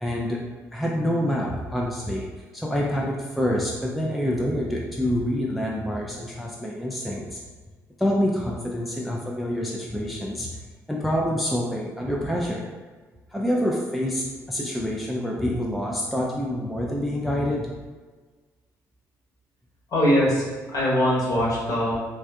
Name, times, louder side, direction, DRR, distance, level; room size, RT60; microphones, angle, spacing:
voice 1, 0.0-2.3 2.5-7.4 8.0-10.5 10.9-12.7 13.3-17.7, equal, ahead, -2 dB, 0.3 m, -27 dB
voice 2, 19.9-22.0, equal, 45° left, -6 dB, 1.0 m, -22 dB
3.3 x 2.1 x 2.3 m, 1.4 s
figure-of-eight pair, 45°, 9 cm